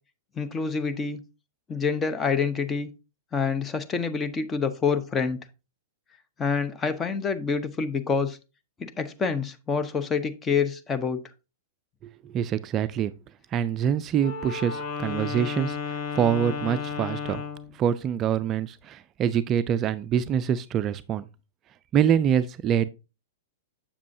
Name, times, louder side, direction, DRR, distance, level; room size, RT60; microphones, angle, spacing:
voice 1, 0.4-1.2 1.7-2.9 3.3-5.4 6.4-8.4 8.8-11.2, left 5 dB, 20° left, 0.8 m, -27 dB
voice 2, 12.0-13.1 13.5-17.4 17.7-21.3 21.9-22.9, right 8 dB, 30° right, 0.4 m, -25 dB
Wind instrument woodwind instrument, 14.2-17.7, left 5 dB, 45° left, 1.2 m, -33 dB
7.3 x 7.1 x 2.7 m
figure-of-eight pair, 105°, 0 cm